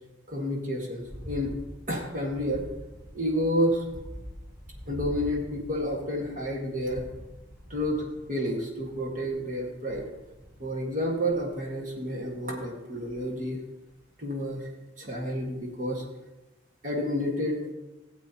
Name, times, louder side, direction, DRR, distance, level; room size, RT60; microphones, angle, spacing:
voice 1, 0.3-1.5 1.9-2.6 3.1-3.8 4.9-7.1 7.7-10.1 10.6-13.6 14.2-14.7 15.0-16.0 16.8-17.7, equal, 45° right, -1 dB, 1.8 m, -30 dB
sound 1, 1.0-12.4 13.1-13.5 13.9-14.0, equal, 10° right, 3.9 m, -45 dB
16.5 x 8.4 x 2.9 m, 1.0 s
head